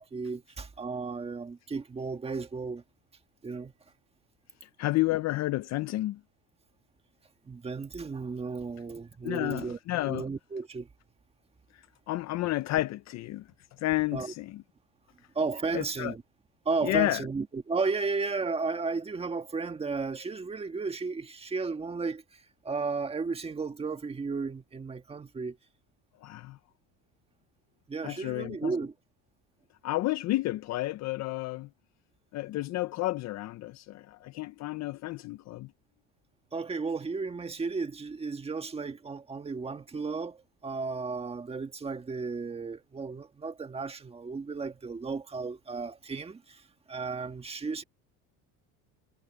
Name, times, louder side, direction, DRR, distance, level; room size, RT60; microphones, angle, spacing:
voice 1, 0.0-2.8 3.4-3.7 7.4-10.9 14.1-14.3 15.3-16.2 16.7-25.6 27.9-28.9 36.5-47.8, right 4 dB, 15° right, 1.6 m, -34 dB
voice 2, 4.6-6.2 9.2-10.2 11.7-13.5 13.8-14.6 15.7-16.1 16.8-17.2 26.2-26.6 28.0-28.7 29.8-31.7 32.3-35.7, left 17 dB, 50° left, 0.6 m, -31 dB
cardioid pair, 135°, 36 cm